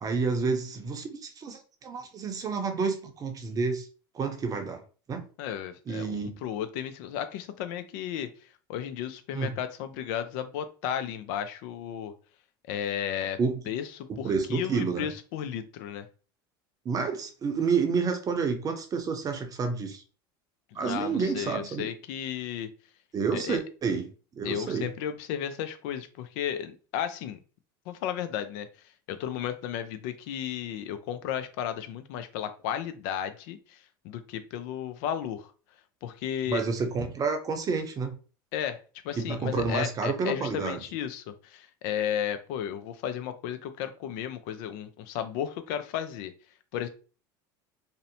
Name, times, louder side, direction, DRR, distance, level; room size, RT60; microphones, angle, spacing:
voice 1, 0.0-3.9 4.1-4.8 5.1-5.2 5.9-6.4 9.3-9.5 13.4-13.6 14.1-15.1 16.8-20.0 20.7-21.9 23.1-24.9 36.5-38.2 39.2-40.8, right 5 dB, 30° right, 6 dB, 0.6 m, -29 dB
voice 2, 5.4-8.3 8.7-12.1 12.7-13.4 13.7-16.1 20.8-22.7 23.3-23.6 24.4-27.4 27.9-28.7 29.1-35.5 36.0-36.6 38.5-38.8 39.0-46.3 46.7-46.9, left 9 dB, 70° left, 10 dB, 0.4 m, -34 dB
2.6 x 2.1 x 2.6 m, 0.37 s
supercardioid pair, 100°, 11 cm